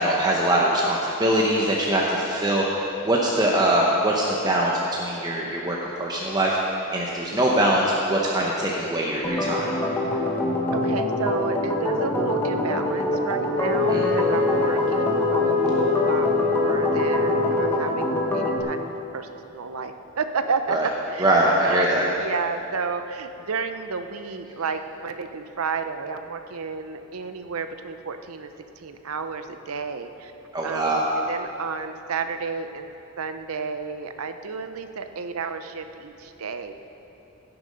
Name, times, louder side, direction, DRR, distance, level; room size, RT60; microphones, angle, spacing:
voice 1, 0.0-6.6 6.9-9.7 13.9-14.0 20.7-20.9 21.2-22.1 30.5-31.0, right 1 dB, 20° right, -3 dB, 0.8 m, -22 dB
Organ, 9.2-18.6, left 1 dB, 10° left, 1.3 m, -25 dB
voice 2, 10.7-18.8 19.1-21.3 21.6-28.5 28.8-30.3 30.6-32.9 33.2-36.7, right 5 dB, 70° right, 8 dB, 0.7 m, -31 dB
Wind instrument woodwind instrument, 13.5-18.1, left 4 dB, 40° left, 1.9 m, -24 dB
16.0 x 6.9 x 5.2 m, 2.9 s
head